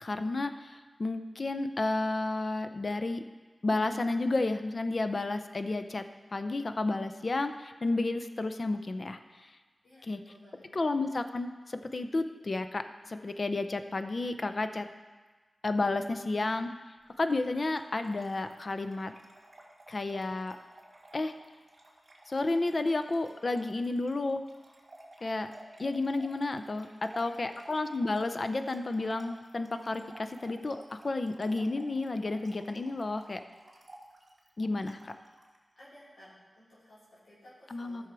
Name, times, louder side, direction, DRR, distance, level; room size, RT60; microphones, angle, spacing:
voice 1, 0.0-3.2 3.6-6.0 6.3-9.2 10.1-10.2 10.7-14.9 15.6-16.7 17.2-19.1 19.9-20.6 21.1-21.3 22.3-24.4 25.2-25.5 25.8-33.4 34.6-35.1 37.7-38.0, left 2 dB, 50° left, 9 dB, 0.6 m, -31 dB
voice 2, 9.8-10.6 26.9-27.5 35.8-38.0, equal, 75° left, -10 dB, 4.0 m, -56 dB
Trickle dribble / Fill (with liquid), 17.1-35.6, right 1 dB, 45° right, 2.5 m, -54 dB
14.0 x 6.4 x 4.7 m, 1.3 s
wide cardioid pair, 75°, 0 cm